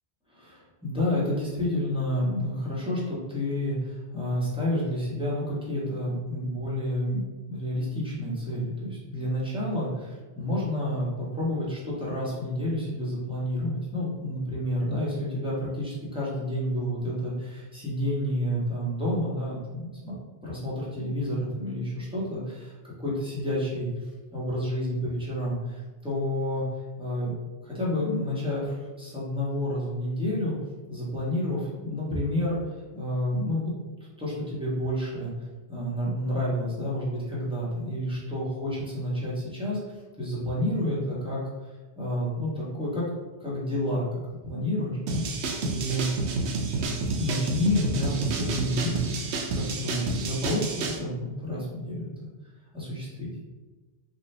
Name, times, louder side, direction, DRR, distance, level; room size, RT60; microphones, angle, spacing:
voice 1, 0.3-20.2 20.4-23.9 24.3-26.6 27.0-27.3 27.6-30.5 30.9-32.6 32.9-33.7 34.2-35.3 35.7-39.8 40.2-41.4 42.0-43.0 43.4-44.1 44.4-45.2 45.6-46.1 47.2-52.1 52.7-53.3, left 1 dB, 5° right, -8 dB, 1.0 m, -29 dB
sound 1, 45.1-51.0, right 3 dB, 85° right, 0.9 m, -29 dB
4.1 x 2.3 x 3.2 m, 1.2 s
omnidirectional pair, 1.1 m